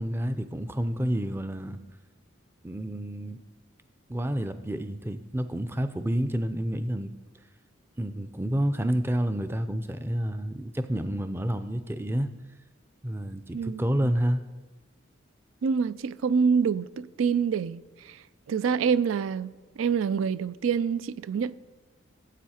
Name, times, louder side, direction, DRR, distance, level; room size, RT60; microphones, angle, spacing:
voice 1, 0.0-1.8 2.6-3.4 4.1-7.1 8.0-12.3 13.0-14.4, equal, 10° right, 0.4 m, -29 dB
voice 2, 13.5-14.1 15.6-18.2 18.5-21.5, right 6 dB, 80° right, 0.4 m, -26 dB
15.0 x 8.2 x 4.3 m
head